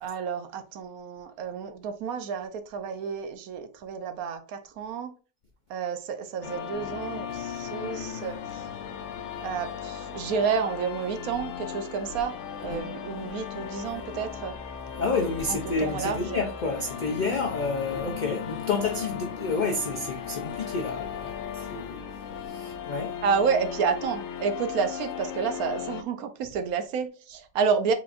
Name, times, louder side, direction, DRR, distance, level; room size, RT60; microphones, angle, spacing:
voice 1, 0.0-5.2 5.7-8.6 9.4-12.4 12.6-14.5 15.5-16.4 23.2-27.9, right 6 dB, 80° right, 1.1 m, -30 dB
sound 1, 6.4-26.0, left 8 dB, 65° left, 0.8 m, -37 dB
voice 2, 14.9-23.2, left 3 dB, 80° left, 0.4 m, -30 dB
4.6 x 4.0 x 2.4 m
omnidirectional pair, 1.5 m